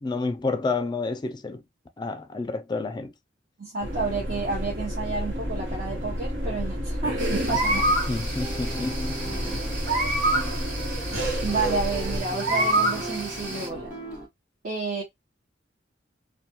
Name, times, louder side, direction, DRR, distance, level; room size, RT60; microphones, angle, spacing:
voice 1, 0.0-1.6 2.0-3.1 8.1-9.2, left 3 dB, 25° left, 0.3 m, -29 dB
voice 2, 3.6-8.0 11.4-13.9 14.6-15.0, right 4 dB, 50° right, 0.8 m, -30 dB
sound 1, 3.8-12.2, equal, 85° right, 1.1 m, -30 dB
sound 2, 7.2-13.7, right 1 dB, 65° right, 1.4 m, -28 dB
sound 3, 8.4-14.3, right 1 dB, 10° right, 1.0 m, -38 dB
2.3 x 2.2 x 2.9 m
head